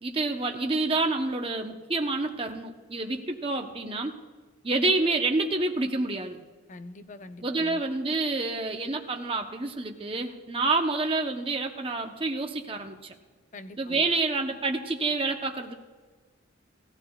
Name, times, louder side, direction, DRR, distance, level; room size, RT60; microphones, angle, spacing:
voice 1, 0.0-4.1 4.6-6.4 7.4-13.1 13.8-15.7, right 3 dB, 30° right, 4 dB, 0.8 m, -28 dB
voice 2, 6.7-7.8 13.5-14.0, left 2 dB, 40° left, 9 dB, 0.5 m, -44 dB
19.0 x 14.0 x 2.3 m, 1.4 s
head